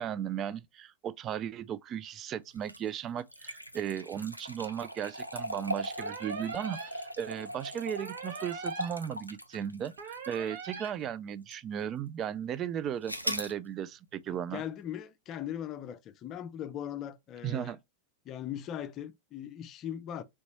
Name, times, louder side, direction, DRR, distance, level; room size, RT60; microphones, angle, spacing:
voice 1, 0.0-14.6 17.4-17.8, right 9 dB, 30° right, 0.4 m, -36 dB
sound 1, 2.6-11.0 11.5-11.6 13.1-13.5, equal, 90° right, 0.5 m, -39 dB
sound 2, 6.0-6.9 8.0-8.9 10.0-10.9, right 6 dB, 50° right, 1.1 m, -42 dB
voice 2, 14.3-17.8 18.3-20.2, left 10 dB, 35° left, 0.5 m, -39 dB
4.0 x 3.4 x 3.0 m
figure-of-eight pair, 90°, 0 cm